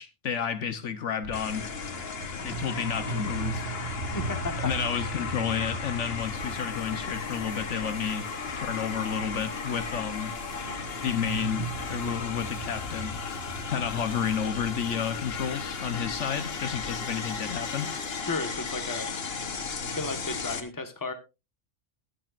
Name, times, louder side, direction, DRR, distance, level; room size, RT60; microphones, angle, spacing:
voice 1, 0.0-1.6 2.4-3.7 4.6-8.3 8.6-10.3 11.0-13.2 13.7-17.9, left 7 dB, 70° left, 1.2 m, -31 dB
sound 1, 1.2-20.5, right 3 dB, 65° right, 2.4 m, -40 dB
sound 2, 1.3-20.6, left 5 dB, 55° left, 1.3 m, -36 dB
voice 2, 4.1-4.7 18.2-19.2 19.8-21.1, left 3 dB, 15° left, 1.3 m, -34 dB
sound 3, 6.2-18.2, equal, 45° right, 2.8 m, -50 dB
21.0 x 7.5 x 2.5 m
omnidirectional pair, 1.3 m